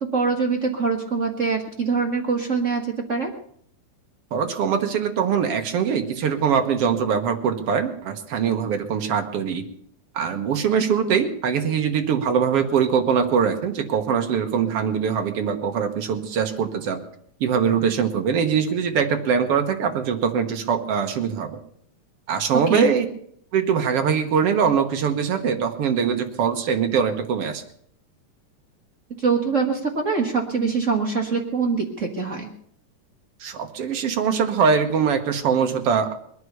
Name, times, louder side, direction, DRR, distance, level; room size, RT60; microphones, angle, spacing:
voice 1, 0.0-3.3 22.7-22.9 29.2-32.5, right 5 dB, 40° right, 2 dB, 1.1 m, -23 dB
voice 2, 4.3-9.6 10.1-17.0 17.4-21.6 22.3-23.1 23.5-27.6 33.4-36.1, right 7 dB, 60° right, 6 dB, 1.9 m, -22 dB
21.5 x 9.6 x 6.7 m, 0.65 s
omnidirectional pair, 3.5 m